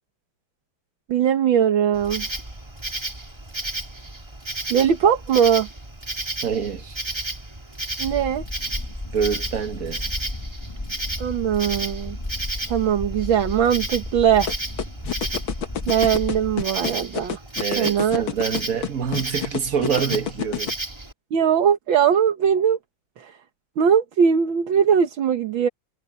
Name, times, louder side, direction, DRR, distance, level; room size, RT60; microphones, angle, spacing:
voice 1, 1.1-2.3 4.7-5.7 8.0-8.4 11.2-12.2 12.7-14.5 15.9-17.4 17.8-18.2 21.3-22.8 23.2-23.3 23.8-25.7, right 8 dB, 80° right, 2.1 m, -20 dB
Insect, 1.9-21.1, right 2 dB, 15° right, 2.0 m, -33 dB
voice 2, 6.4-7.0 9.1-10.0 17.6-20.8, right 7 dB, 50° right, 1.6 m, -26 dB
sound 1, 8.0-16.7, left 1 dB, 15° left, 1.5 m, -34 dB
sound 2, 14.5-20.7, left 8 dB, 85° left, 2.3 m, -27 dB
omnidirectional pair, 2.1 m